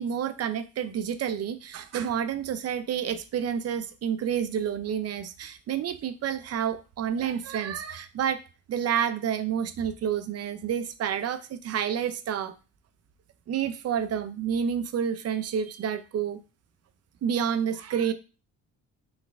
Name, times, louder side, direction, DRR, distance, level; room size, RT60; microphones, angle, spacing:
voice 1, 0.0-8.4 8.7-12.5 13.5-16.4 17.2-18.1, right 8 dB, 55° right, 11 dB, 0.6 m, -29 dB
3.9 x 3.5 x 3.5 m, 0.32 s
cardioid pair, 90°, 30 cm